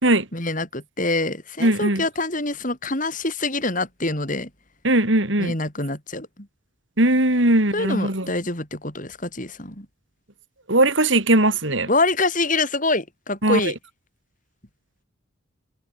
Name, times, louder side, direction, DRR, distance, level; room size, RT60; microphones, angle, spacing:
voice 1, 0.3-4.5 5.4-6.5 7.7-9.9 11.9-13.8, left 2 dB, 40° left, 7.3 m, -25 dB
voice 2, 1.6-2.0 4.8-5.5 7.0-8.3 10.7-11.9 13.4-13.7, right 1 dB, 65° right, 4.4 m, -19 dB
head